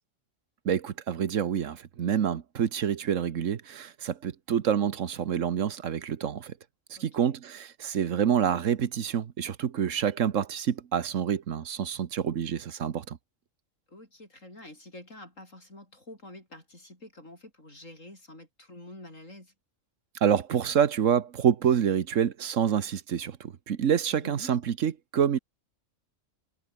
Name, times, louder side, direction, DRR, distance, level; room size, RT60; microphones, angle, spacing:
voice 1, 0.6-6.5 6.9-13.2 20.2-25.4, right 8 dB, 75° right, 1.4 m, -27 dB
voice 2, 6.9-7.4 13.9-19.5 24.1-24.5, left 1 dB, 75° left, 8.4 m, -48 dB
omnidirectional pair, 1.3 m